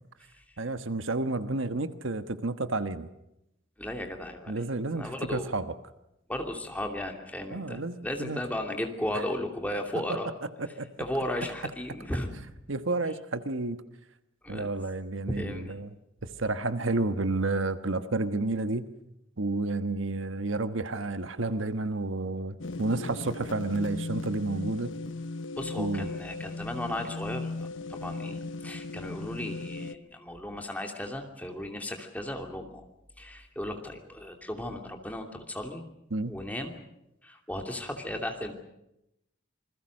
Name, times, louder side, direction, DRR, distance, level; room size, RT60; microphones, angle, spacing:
voice 1, 0.6-3.1 4.5-5.6 7.5-8.4 10.1-10.2 10.8-10.9 12.7-13.8 14.5-15.9 16.2-18.9 19.4-24.9 25.8-26.1 36.1-36.4, right 2 dB, 75° right, 10 dB, 1.3 m, -30 dB
voice 2, 3.8-4.5 4.9-5.5 6.3-10.3 11.0-12.3 14.4-14.7 15.3-15.8 25.6-32.8 33.2-35.8 36.3-36.7 37.2-38.5, left 1 dB, 10° left, 3 dB, 2.7 m, -35 dB
sound 1, 22.6-29.9, left 3 dB, 70° left, 0.9 m, -37 dB
27.5 x 21.5 x 6.5 m, 0.84 s
head